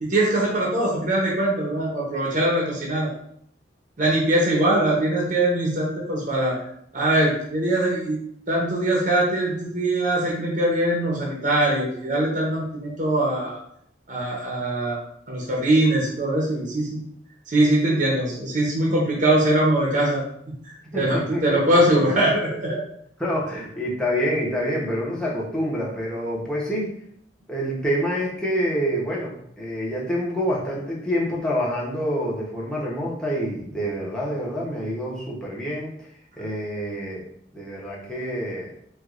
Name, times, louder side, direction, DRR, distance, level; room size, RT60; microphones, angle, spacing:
voice 1, 0.0-3.1 4.0-6.6 6.9-8.2 8.5-13.6 14.1-15.0 15.3-17.0 17.5-20.2 20.9-22.8 23.5-23.6, right 1 dB, 45° right, -4 dB, 0.7 m, -22 dB
voice 2, 20.9-21.8 23.2-26.9 27.5-35.9 36.4-37.2 37.5-38.7, equal, 5° left, -5 dB, 0.8 m, -27 dB
4.6 x 2.3 x 2.4 m, 0.68 s
head